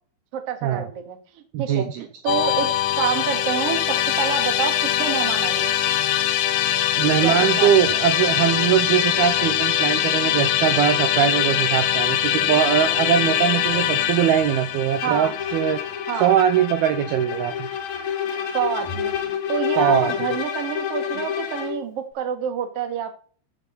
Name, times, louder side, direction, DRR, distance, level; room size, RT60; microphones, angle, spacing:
voice 1, 0.3-1.9 2.2-2.7 3.0-5.7 7.2-7.7 15.0-15.3 16.1-16.3 18.5-23.1, right 8 dB, 45° right, 5 dB, 2.3 m, -27 dB
voice 2, 1.5-2.0 7.0-15.8 16.2-17.7 19.8-20.1, right 10 dB, 75° right, 8 dB, 2.5 m, -21 dB
Musical instrument, 2.3-17.4, left 11 dB, 85° left, 3.4 m, -23 dB
Bowed string instrument, 14.9-21.8, left 9 dB, 65° left, 1.9 m, -29 dB
15.0 x 8.3 x 4.2 m, 0.42 s
omnidirectional pair, 5.2 m